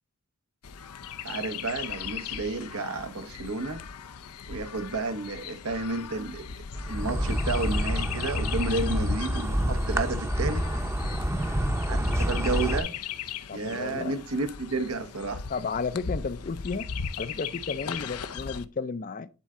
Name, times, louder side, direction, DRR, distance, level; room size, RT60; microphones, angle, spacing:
Chirp tweet, 0.6-18.7, left 6 dB, 90° left, 0.6 m, -37 dB
voice 1, 1.2-3.8 4.5-6.5 6.9-10.6 11.9-12.9 13.5-15.4, right 3 dB, 80° right, 1.1 m, -31 dB
Insect, 6.8-12.8, equal, 10° right, 0.7 m, -28 dB
voice 2, 13.5-14.2 15.5-16.9 17.2-19.3, left 4 dB, 35° left, 0.4 m, -33 dB
10.5 x 4.4 x 3.7 m
head